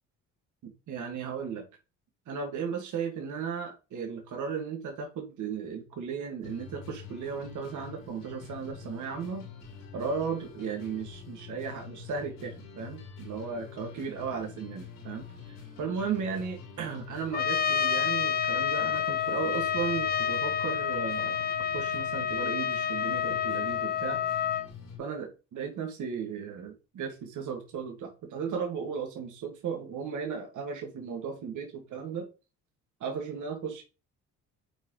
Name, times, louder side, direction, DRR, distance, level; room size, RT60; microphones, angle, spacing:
voice 1, 0.6-1.6 2.3-9.4 9.9-15.3 15.8-21.4 21.7-24.2 25.0-32.3 33.0-33.8, right 6 dB, 65° right, 3 dB, 1.7 m, -35 dB
sound 1, 6.4-25.0, left 6 dB, 85° left, 3.1 m, -46 dB
Trumpet, 17.3-24.7, left 8 dB, 30° left, 0.5 m, -29 dB
7.8 x 4.5 x 3.0 m, 0.31 s
supercardioid pair, 75°, 33 cm